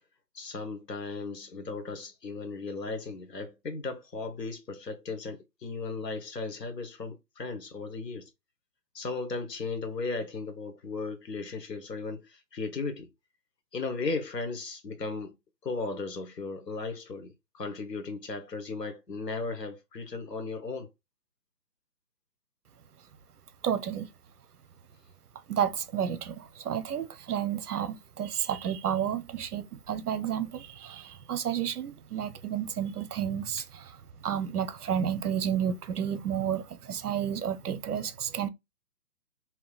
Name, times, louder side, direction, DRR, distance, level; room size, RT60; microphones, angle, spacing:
voice 1, 0.3-8.3 8.9-13.1 13.7-15.3 15.6-20.9, left 3 dB, 80° left, 1.1 m, -36 dB
voice 2, 23.6-24.1 25.5-33.6 34.2-38.5, right 9 dB, 70° right, 0.6 m, -31 dB
3.6 x 2.8 x 2.3 m
hypercardioid pair, 160°, 49 cm